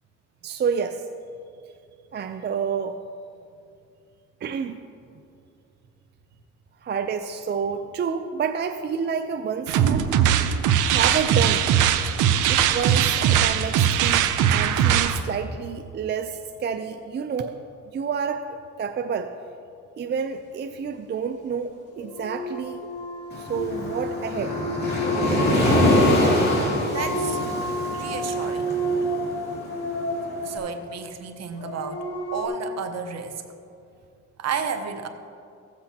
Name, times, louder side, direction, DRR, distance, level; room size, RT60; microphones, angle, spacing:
voice 1, 0.4-1.0 2.1-3.0 4.4-4.8 6.8-10.3 10.9-11.7 12.5-17.6 17.9-19.3 20.0-22.9 23.4-24.5, right 6 dB, 35° right, 7 dB, 0.4 m, -29 dB
sound 1, 9.7-15.2, right 9 dB, 85° right, 0.6 m, -20 dB
sound 2, 21.9-32.5, equal, 50° left, 1.6 m, -30 dB
Waves surf, 23.3-30.4, left 1 dB, 35° left, 2.5 m, -24 dB
voice 2, 26.9-27.4 27.9-28.7 30.4-32.0 32.3-33.4 34.4-35.1, right 6 dB, 60° right, 7 dB, 0.9 m, -32 dB
15.0 x 7.8 x 2.8 m, 2.5 s
cardioid pair, 90°, 30 cm